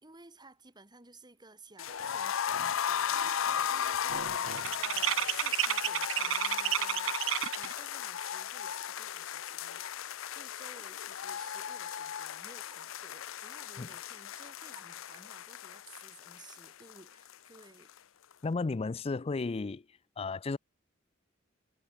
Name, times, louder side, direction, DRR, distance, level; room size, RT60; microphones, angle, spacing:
voice 1, 0.0-18.0, right 3 dB, 20° right, 4.0 m, -56 dB
sound 1, 1.8-17.6 17.9-18.0 18.3-18.4, left 9 dB, 85° left, 0.6 m, -36 dB
sound 2, 2.1-2.2 2.5-2.9 3.2-7.8, right 12 dB, 70° right, 0.5 m, -32 dB
voice 2, 18.4-19.9 20.2-20.6, left 3 dB, 30° left, 0.4 m, -33 dB
head